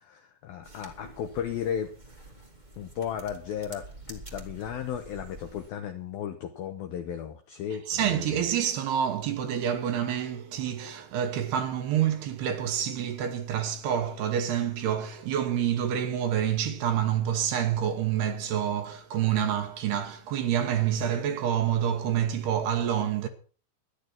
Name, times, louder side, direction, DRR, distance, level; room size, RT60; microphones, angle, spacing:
voice 1, 0.0-1.9 2.8-8.5, left 9 dB, 90° left, 2.1 m, -35 dB
sound 1, 0.6-5.7, right 1 dB, 20° right, 1.1 m, -47 dB
voice 2, 7.9-23.3, right 9 dB, 70° right, 2.7 m, -27 dB
13.5 x 11.0 x 5.9 m
omnidirectional pair, 5.6 m